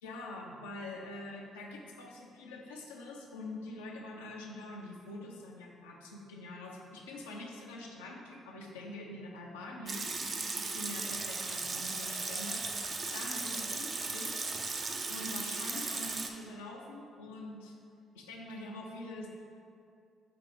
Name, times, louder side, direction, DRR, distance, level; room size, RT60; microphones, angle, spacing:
voice 1, 0.0-10.1 10.4-12.6 13.1-14.4 15.1-17.8 18.1-19.3, left 2 dB, 85° left, -2 dB, 0.7 m, -45 dB
Water tap faucet / Sink (filling or washing) / Liquid, 9.9-16.3, right 3 dB, 45° right, 0.6 m, -36 dB
7.0 x 2.9 x 4.9 m, 2.4 s
hypercardioid pair, 50°, 0 cm